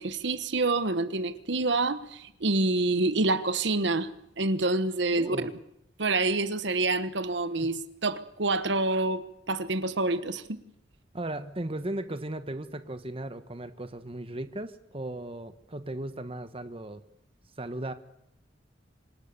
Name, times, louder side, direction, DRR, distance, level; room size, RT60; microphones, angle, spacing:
voice 1, 0.0-4.1 4.4-5.5 6.0-10.6, right 2 dB, 65° right, 12 dB, 1.2 m, -27 dB
voice 2, 5.2-5.5 7.6-7.7 11.1-17.0 17.6-17.9, right 1 dB, 30° right, 10 dB, 1.2 m, -36 dB
26.0 x 19.0 x 6.8 m, 0.77 s
head